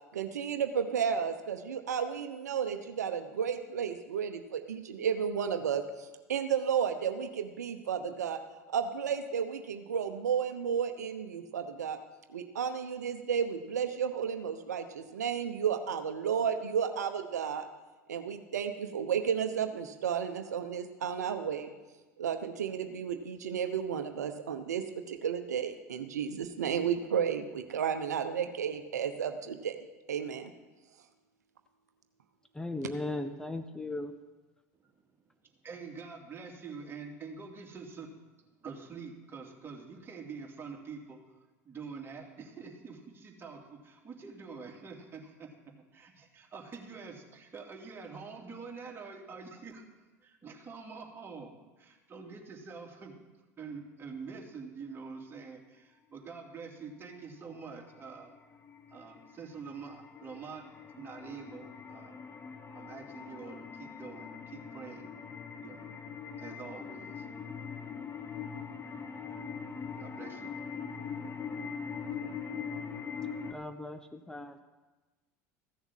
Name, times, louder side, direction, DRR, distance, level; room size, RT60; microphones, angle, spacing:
voice 1, 0.1-8.4 8.7-12.0 12.3-17.7 18.1-21.7 22.2-29.8 30.1-30.5, right 7 dB, 85° right, 7 dB, 0.9 m, -32 dB
voice 2, 32.5-34.1 73.5-74.6, left 2 dB, 10° left, 7 dB, 1.0 m, -37 dB
voice 3, 35.6-38.1 38.6-41.2 41.6-45.5 45.9-49.8 50.2-53.1 53.6-58.4 58.9-60.6 60.9-62.2 62.7-65.1 65.6-65.9 66.4-67.2 70.0-70.5, right 5 dB, 25° right, 0 dB, 2.8 m, -46 dB
sound 1, 57.3-73.5, left 6 dB, 25° left, 1.2 m, -42 dB
15.0 x 7.1 x 7.3 m, 1.2 s
hypercardioid pair, 80°, 9 cm